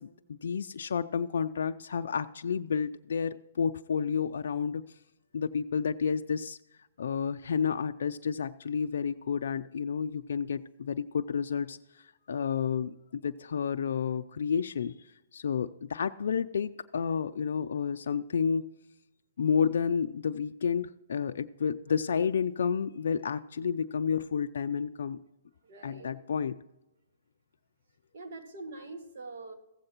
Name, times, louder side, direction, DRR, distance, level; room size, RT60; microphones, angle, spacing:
voice 1, 0.0-4.8 5.3-6.6 7.0-18.7 19.4-25.2 25.8-26.6, left 6 dB, 70° left, 8 dB, 0.3 m, -31 dB
voice 2, 21.9-22.2 25.6-26.4 28.1-29.5, right 3 dB, 55° right, 3 dB, 1.7 m, -45 dB
15.5 x 7.6 x 2.9 m, 0.94 s
hypercardioid pair, 135°, 0 cm